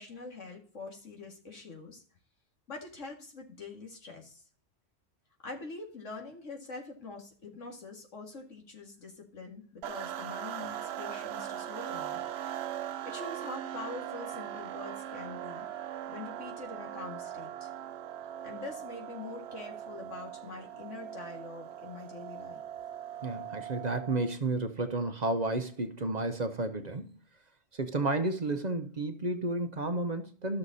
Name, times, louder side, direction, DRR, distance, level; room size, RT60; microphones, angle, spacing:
voice 1, 0.0-2.0 2.7-4.4 5.4-12.3 13.0-15.7 16.1-17.7 18.4-22.6, left 3 dB, 85° left, 2.3 m, -44 dB
sound 1, 9.8-24.4, right 10 dB, 65° right, 0.8 m, -40 dB
voice 2, 23.2-27.1 27.7-30.6, right 2 dB, 40° right, 0.8 m, -32 dB
13.0 x 6.4 x 4.1 m
omnidirectional pair, 1.2 m